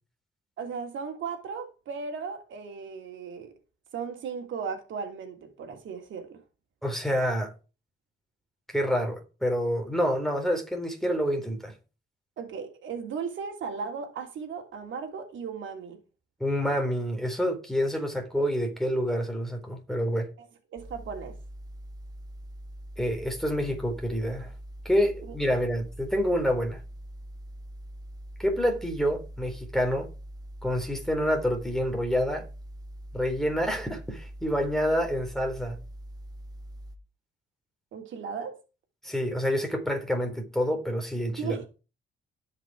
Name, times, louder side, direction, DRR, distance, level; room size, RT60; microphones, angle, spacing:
voice 1, 0.6-3.5 3.9-6.4 12.4-16.0 20.4-20.5 20.7-21.3 25.2-25.3 37.9-38.6 41.4-41.7, right 6 dB, 75° right, 3.0 m, -36 dB
voice 2, 6.8-7.5 8.7-11.7 16.4-20.3 23.0-24.5 24.9-26.8 28.4-30.1 30.6-32.5 33.1-35.8 39.0-41.6, equal, ahead, 3.7 m, -27 dB
sound 1, 20.8-37.0, right 1 dB, 20° right, 2.1 m, -43 dB
17.0 x 5.8 x 4.8 m
cardioid pair, 90°, 20 cm